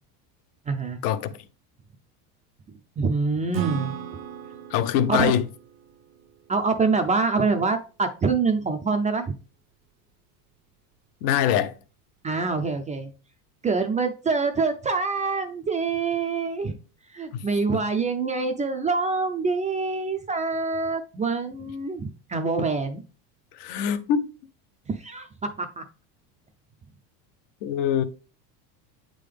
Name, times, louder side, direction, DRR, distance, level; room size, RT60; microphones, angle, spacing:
voice 1, 0.7-1.0 3.0-3.9 5.1-5.3 6.5-9.2 12.2-13.1 13.6-16.8 17.1-23.0 24.9-25.8, right 4 dB, 15° right, 0.4 m, -25 dB
Acoustic guitar / Strum, 3.5-7.1, right 9 dB, 60° right, 0.7 m, -35 dB
voice 2, 4.7-5.4 11.2-11.7 17.3-17.4 17.7-17.8 23.5-24.3 27.6-28.0, left 9 dB, 70° left, 0.8 m, -23 dB
8.2 x 3.8 x 3.3 m
supercardioid pair, 115°, 47 cm